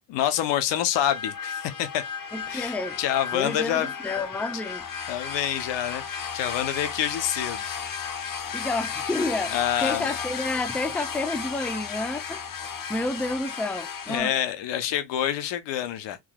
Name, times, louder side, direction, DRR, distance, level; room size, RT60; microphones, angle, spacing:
voice 1, 0.1-2.0 2.5-3.9 5.1-7.8 9.5-10.1 14.1-16.2, left 11 dB, 90° left, 0.8 m, -27 dB
sound 1, 0.9-14.2, left 6 dB, 50° left, 0.9 m, -34 dB
voice 2, 2.3-3.0 3.3-4.9 8.5-12.4 12.9-14.3, left 2 dB, 5° left, 0.4 m, -30 dB
3.8 x 3.0 x 2.2 m
cardioid pair, 80°, 42 cm